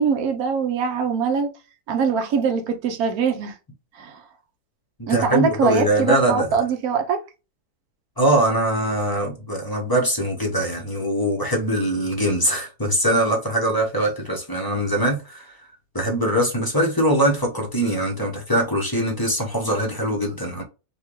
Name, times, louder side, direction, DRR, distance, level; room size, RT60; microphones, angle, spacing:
voice 1, 0.0-1.5 1.9-3.5 4.0-4.1 5.1-7.2, right 6 dB, 65° right, 1.2 m, -22 dB
voice 2, 5.0-6.6 8.2-15.6 15.9-20.6, right 1 dB, 20° left, 0.7 m, -22 dB
5.6 x 2.4 x 3.0 m
omnidirectional pair, 1.7 m